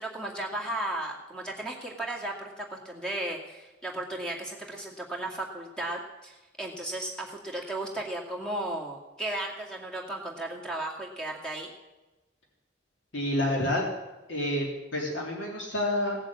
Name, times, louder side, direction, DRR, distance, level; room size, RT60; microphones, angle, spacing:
voice 1, 0.0-11.7, right 1 dB, 5° left, -1 dB, 2.2 m, -35 dB
voice 2, 13.1-13.8 14.3-16.2, left 1 dB, 80° left, -2 dB, 2.9 m, -28 dB
17.0 x 7.3 x 8.6 m, 1.1 s
head